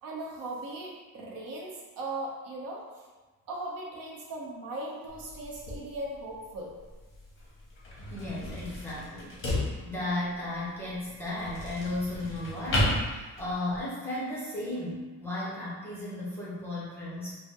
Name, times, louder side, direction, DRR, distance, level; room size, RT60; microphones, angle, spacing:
voice 1, 0.0-1.7 2.0-2.8 3.5-6.7, right 2 dB, 70° right, -2 dB, 0.7 m, -38 dB
sound 1, 5.1-13.8, left 1 dB, 35° left, 0.9 m, -34 dB
voice 2, 8.1-17.3, left 1 dB, 5° left, -8 dB, 0.6 m, -35 dB
3.3 x 2.1 x 2.7 m, 1.3 s
cardioid pair, 160°, 35 cm